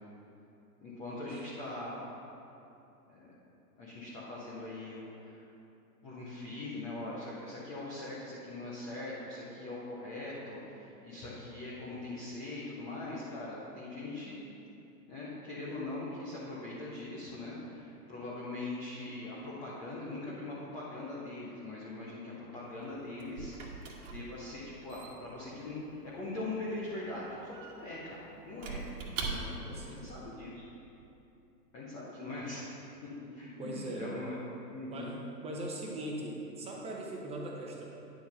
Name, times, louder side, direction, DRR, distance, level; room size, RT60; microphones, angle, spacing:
voice 1, 0.8-2.0 3.1-3.3 3.7-5.4 6.0-14.4 15.1-28.2 28.5-28.9 29.2-30.7 31.7-32.7 33.3-35.1, left 2 dB, 10° left, -7 dB, 0.4 m, -41 dB
Squeak / Wood, 22.7-29.8, right 4 dB, 50° right, 1.3 m, -43 dB
voice 2, 29.3-30.3 33.6-34.3 34.9-37.9, right 1 dB, 10° right, -2 dB, 0.9 m, -41 dB
9.5 x 4.6 x 5.3 m, 2.8 s
hypercardioid pair, 125°, 49 cm